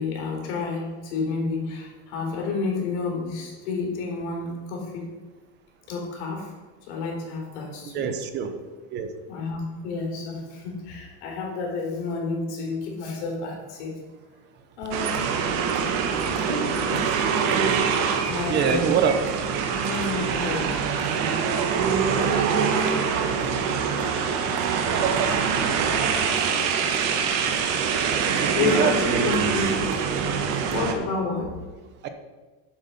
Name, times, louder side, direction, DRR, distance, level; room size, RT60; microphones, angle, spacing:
voice 1, 0.0-5.1 5.9-6.5 6.8-8.1 9.3-14.0 14.8-15.3 16.3-18.0 18.3-18.9 19.7-20.7 28.5-29.7 30.7-31.5, left 3 dB, 90° left, -1 dB, 3.7 m, -30 dB
voice 2, 7.9-8.5 8.9-9.1 18.5-19.2 28.4-29.5 32.0-32.1, right 7 dB, 30° right, 8 dB, 0.8 m, -25 dB
sound 1, 14.9-30.9, right 6 dB, 50° right, 1.3 m, -24 dB
10.0 x 7.2 x 5.5 m, 1.3 s
cardioid pair, 175°, 33 cm